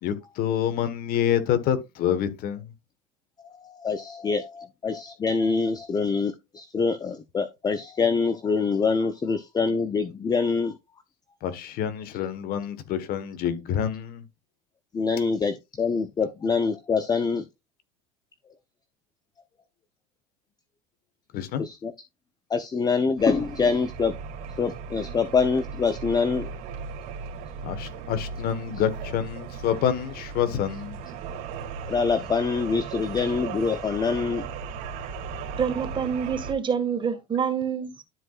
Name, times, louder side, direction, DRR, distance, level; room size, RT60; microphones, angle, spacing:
voice 1, 0.0-2.7 11.4-14.2 21.3-21.6 27.6-31.0, left 9 dB, 55° left, 1.4 m, -27 dB
voice 2, 3.4-10.8 14.9-17.5 21.6-21.9 22.5-24.2 24.6-26.5 31.9-34.5, left 5 dB, 20° left, 0.7 m, -25 dB
sound 1, 23.2-36.5, right 6 dB, 70° right, 2.4 m, -37 dB
voice 3, 35.6-38.0, right 7 dB, 25° right, 1.7 m, -27 dB
12.5 x 4.8 x 2.4 m
supercardioid pair, 100°, 18 cm